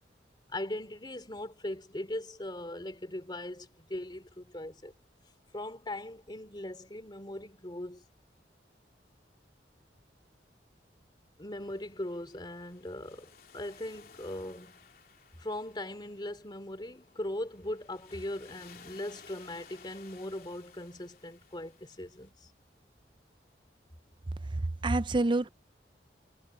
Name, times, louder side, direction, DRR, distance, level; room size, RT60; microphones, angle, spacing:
voice 1, 0.5-4.9 5.5-8.0 11.4-14.8 15.4-22.5, left 1 dB, 25° left, 3.0 m, -39 dB
sound 1, 11.6-22.3, left 6 dB, 55° left, 3.1 m, -57 dB
voice 2, 24.5-25.5, right 2 dB, 25° right, 0.5 m, -28 dB
head